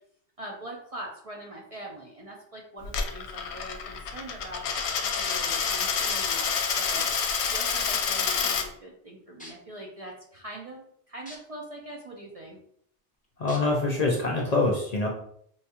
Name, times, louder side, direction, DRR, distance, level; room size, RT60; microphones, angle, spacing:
voice 1, 0.4-7.1 7.5-12.6, right 1 dB, 45° right, -2 dB, 0.5 m, -42 dB
Coin (dropping), 2.8-8.7, left 6 dB, 75° left, 0.8 m, -28 dB
sound 1, 5.3-5.6 6.5-6.6 7.3-7.4 7.9-8.3 9.4-9.5 11.3-11.4 11.9-12.0 13.5-13.6 14.4-14.5, left 1 dB, 10° left, 0.7 m, -43 dB
voice 2, 13.4-15.1, left 2 dB, 50° left, -1 dB, 0.5 m, -25 dB
4.6 x 2.3 x 2.8 m, 0.67 s
omnidirectional pair, 1.2 m